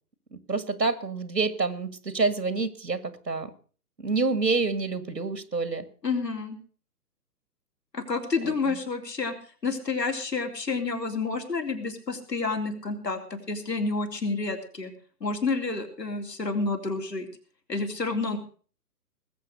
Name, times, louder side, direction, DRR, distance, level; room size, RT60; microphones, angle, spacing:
voice 1, 0.3-3.5 4.0-5.9 8.4-8.8, right 3 dB, 90° right, 14 dB, 1.8 m, -28 dB
voice 2, 6.0-6.6 7.9-9.3 9.6-14.9 15.2-17.3 17.7-18.4, left 4 dB, 80° left, 4 dB, 3.5 m, -29 dB
19.5 x 8.0 x 6.6 m, 0.42 s
figure-of-eight pair, 135°, 48 cm